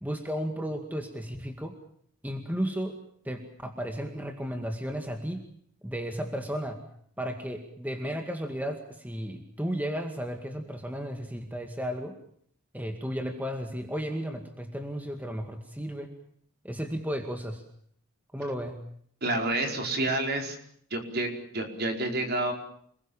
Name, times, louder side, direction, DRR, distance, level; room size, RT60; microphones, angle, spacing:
voice 1, 0.0-1.8 2.2-3.0 3.2-5.5 5.8-6.8 7.2-12.2 12.7-16.1 16.6-17.6 18.3-18.8, equal, 10° right, 5 dB, 2.1 m, -34 dB
voice 2, 19.2-20.6 20.9-22.5, right 2 dB, 50° right, 3 dB, 5.0 m, -29 dB
28.5 x 21.5 x 7.2 m, 0.64 s
head